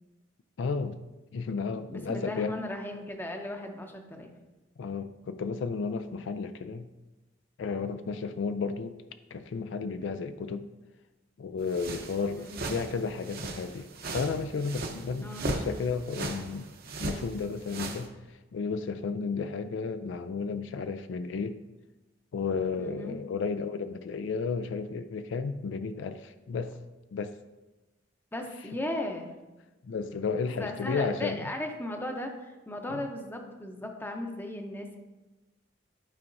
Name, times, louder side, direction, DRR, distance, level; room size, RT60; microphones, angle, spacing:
voice 1, 0.6-1.0 1.3-2.6 4.8-6.9 7.6-9.0 9.3-10.7 11.4-13.9 14.1-16.7 17.0-21.6 22.3-26.8 27.1-27.3 29.8-31.5 32.9-33.0, left 5 dB, 70° left, 11 dB, 0.4 m, -33 dB
voice 2, 1.9-4.3 12.4-12.8 15.2-15.5 22.8-23.2 28.3-29.3 30.6-35.0, left 1 dB, 10° left, 3 dB, 0.7 m, -36 dB
sound 1, 11.7-18.1, right 2 dB, 55° right, 0.8 m, -38 dB
11.5 x 4.6 x 2.6 m, 1.1 s
head